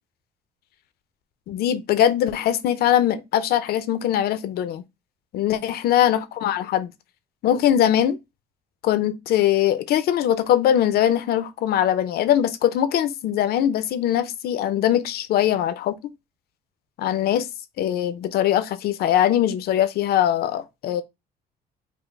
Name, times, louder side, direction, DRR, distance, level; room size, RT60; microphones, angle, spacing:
voice 1, 1.5-4.8 5.3-6.9 7.4-8.2 8.8-16.0 17.0-17.5 17.8-21.0, left 11 dB, 65° left, 0.6 m, -21 dB
5.1 x 2.1 x 3.2 m
cardioid pair, 110°, 17 cm